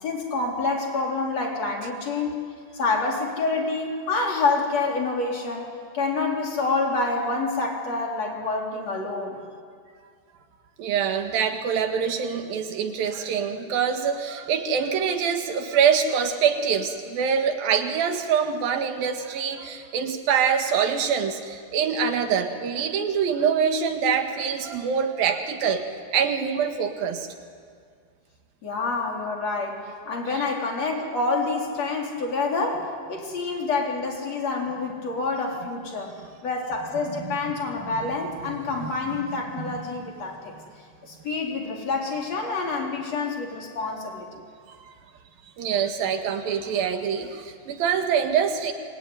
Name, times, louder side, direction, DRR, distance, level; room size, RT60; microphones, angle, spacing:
voice 1, 0.0-2.4 2.7-5.7 5.9-9.4 28.6-36.1 36.4-40.5 41.0-44.3, left 3 dB, 45° left, 0 dB, 5.0 m, -27 dB
voice 2, 10.8-25.8 26.1-27.3 30.4-30.5 37.1-37.2 38.8-38.9 39.6-39.8 44.8-44.9 45.6-48.7, right 7 dB, 85° right, 6 dB, 3.6 m, -25 dB
25.0 x 22.5 x 9.9 m, 2.1 s
omnidirectional pair, 4.0 m